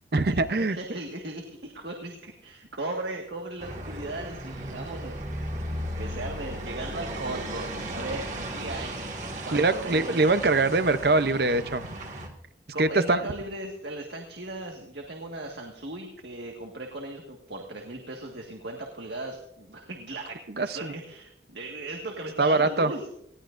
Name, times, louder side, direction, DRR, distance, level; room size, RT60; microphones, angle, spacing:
voice 1, 0.1-0.8 9.5-11.9 12.8-13.2 20.6-20.9 22.4-22.9, right 3 dB, 60° right, 12 dB, 0.7 m, -23 dB
voice 2, 0.7-5.7 6.0-9.0 9.4-10.4 12.7-23.0, right 2 dB, 75° right, 1 dB, 1.7 m, -37 dB
sound 1, 3.6-12.3, right 1 dB, 40° right, 2.0 m, -36 dB
20.0 x 16.0 x 2.6 m, 0.78 s
head